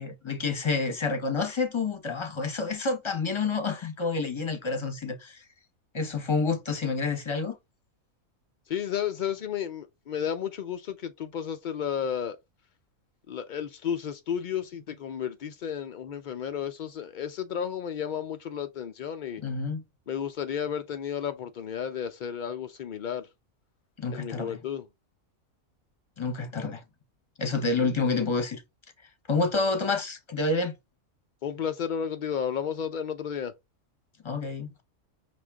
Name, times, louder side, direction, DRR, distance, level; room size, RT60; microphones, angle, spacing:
voice 1, 0.0-5.4 5.9-7.6 19.4-19.8 24.0-24.6 26.2-26.8 27.4-28.6 29.3-30.7 34.2-34.8, left 4 dB, 25° left, 0.7 m, -28 dB
voice 2, 8.7-12.4 13.3-19.4 20.1-23.3 24.1-24.8 31.4-33.5, left 8 dB, 85° left, 0.4 m, -32 dB
6.0 x 2.5 x 3.4 m
omnidirectional pair, 1.4 m